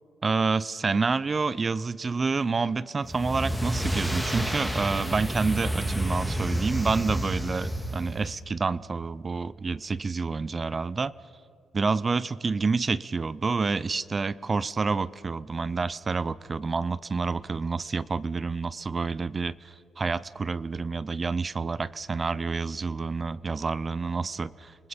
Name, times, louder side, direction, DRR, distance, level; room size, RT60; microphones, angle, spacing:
voice 1, 0.2-11.1 11.7-24.9, right 4 dB, 30° right, 19 dB, 0.5 m, -28 dB
sound 1, 3.0-8.4, equal, 5° right, 1.9 m, -30 dB
29.5 x 19.5 x 5.2 m, 2.6 s
cardioid pair, 90°, 0 cm